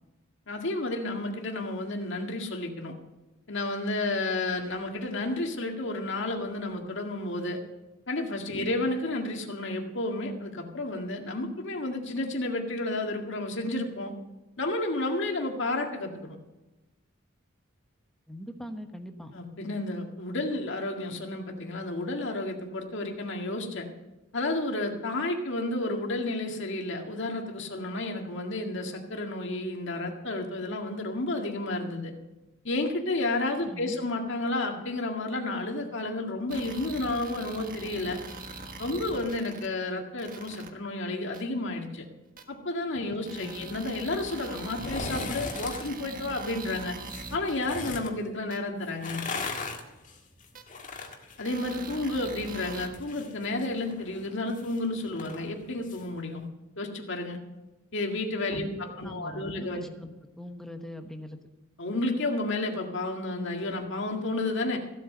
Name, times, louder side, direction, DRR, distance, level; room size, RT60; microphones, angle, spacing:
voice 1, 0.5-2.9 3.5-7.6 8.1-14.1 14.6-16.4 19.3-23.9 24.3-32.1 32.6-38.2 38.8-42.0 42.5-47.0 47.3-49.2 51.4-56.4 56.8-57.4 57.9-59.9 61.8-64.8, left 2 dB, 60° left, 3 dB, 1.9 m, -31 dB
voice 2, 18.3-19.3 33.6-34.0 43.4-43.7 58.5-58.8 59.0-61.4, equal, ahead, 5 dB, 1.1 m, -41 dB
sound 1, 36.5-39.7 40.2-40.7 41.3-41.4 42.4-42.5 43.3-47.6 48.5-48.6 49.5-49.6 50.6-50.7 51.4-52.9, right 3 dB, 40° right, 1.5 m, -42 dB
sound 2, 44.7-45.9 47.0-48.1 48.9-52.3 52.6-56.0 56.4-56.5, left 3 dB, 40° left, 1.9 m, -38 dB
15.5 x 8.3 x 6.6 m, 1.1 s
head